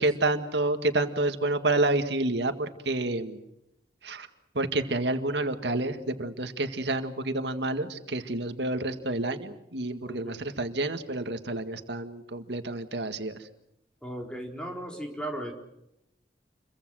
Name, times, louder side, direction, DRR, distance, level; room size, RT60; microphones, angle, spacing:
voice 1, 0.0-3.4 4.0-4.3 4.5-13.5, right 2 dB, 85° right, 7 dB, 1.9 m, -29 dB
voice 2, 10.0-10.5 14.0-15.5, right 1 dB, 5° left, 1 dB, 4.1 m, -37 dB
29.0 x 23.0 x 6.4 m, 0.84 s
head